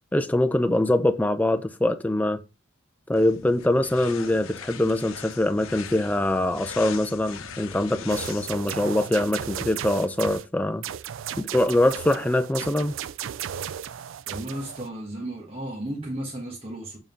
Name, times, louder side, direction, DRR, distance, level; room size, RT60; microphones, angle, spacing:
voice 1, 0.1-2.4 3.1-10.8 11.4-13.0, left 1 dB, 10° left, 0.5 m, -23 dB
sound 1, 3.1-8.7, left 7 dB, 85° left, 0.8 m, -41 dB
sound 2, 8.1-10.5 10.8-14.9, right 9 dB, 70° right, 0.4 m, -35 dB
voice 2, 14.2-17.0, right 1 dB, 25° right, 1.4 m, -34 dB
7.1 x 3.8 x 5.3 m
head